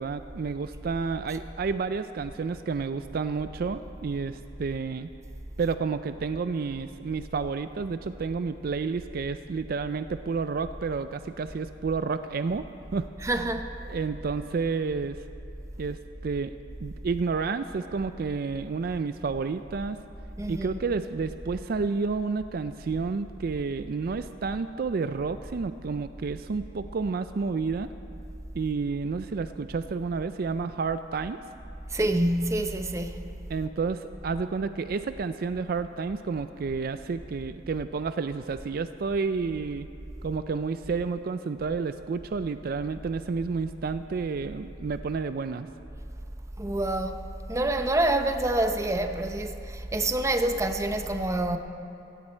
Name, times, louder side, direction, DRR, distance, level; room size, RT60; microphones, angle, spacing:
voice 1, 0.0-5.1 5.6-12.6 12.9-13.1 13.8-15.2 15.8-16.5 16.8-20.0 20.5-27.9 28.5-31.4 33.5-39.9 40.2-45.7, right 4 dB, 55° right, 11 dB, 0.4 m, -30 dB
voice 2, 13.2-13.7 20.4-20.8 31.9-33.2 46.6-47.2 47.5-51.6, right 1 dB, 15° right, 6 dB, 0.7 m, -27 dB
17.0 x 15.0 x 4.4 m, 2.8 s
head